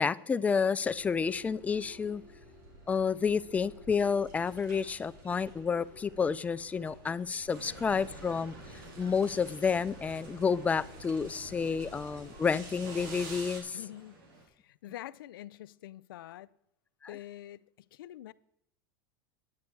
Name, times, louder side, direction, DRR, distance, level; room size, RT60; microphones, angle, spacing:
voice 1, 0.0-2.2 2.9-8.5 9.0-13.8, left 6 dB, 15° left, 0.3 m, -30 dB
sound 1, 0.8-13.6, right 1 dB, 65° right, 3.5 m, -50 dB
sound 2, 7.5-14.5, right 2 dB, 90° right, 2.6 m, -52 dB
voice 2, 13.7-16.5 17.1-18.3, left 14 dB, 90° left, 0.4 m, -46 dB
9.7 x 9.6 x 4.6 m
supercardioid pair, 130°, 11 cm